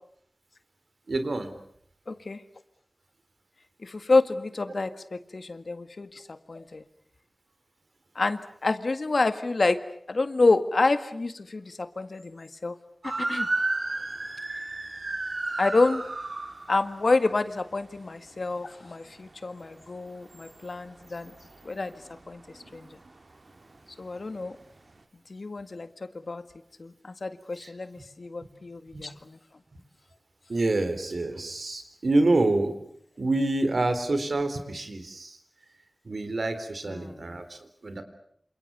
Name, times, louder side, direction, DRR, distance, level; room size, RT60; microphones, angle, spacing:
voice 1, 1.1-1.5 22.6-22.8 27.6-27.7 28.9-29.1 30.5-32.7 33.2-35.4 36.0-38.0, right 2 dB, 85° right, 10 dB, 3.8 m, -27 dB
voice 2, 2.1-2.4 3.8-6.8 8.2-9.8 10.1-12.8 13.0-13.5 15.6-16.1 16.7-21.3 21.6-22.9 24.0-24.6 25.3-26.4 26.8-29.4 36.9-37.4, left 3 dB, 80° left, 10 dB, 1.8 m, -28 dB
sound 1, 13.0-19.8 20.1-24.0 24.3-24.6 24.9-25.0, right 2 dB, 65° right, 2.7 m, -34 dB
28.0 x 27.5 x 7.0 m, 0.66 s
wide cardioid pair, 70°, 0 cm